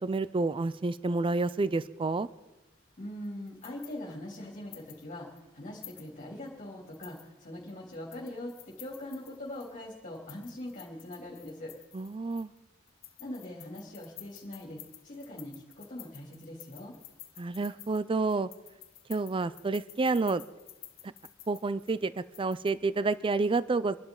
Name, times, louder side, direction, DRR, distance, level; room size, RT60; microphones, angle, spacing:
voice 1, 0.0-2.3 11.9-12.5 17.4-18.5 19.1-20.4 21.0-21.1 21.5-24.0, right 3 dB, 25° right, 16 dB, 0.4 m, -29 dB
voice 2, 3.0-11.7 13.2-16.9, left 1 dB, 40° left, -3 dB, 3.2 m, -42 dB
sound 1, 3.2-5.0 5.4-5.5 5.8-6.5 6.9-9.7 10.1-12.6 12.9-22.7, left 14 dB, 70° left, 1.2 m, -52 dB
26.5 x 11.5 x 3.9 m, 1.1 s
head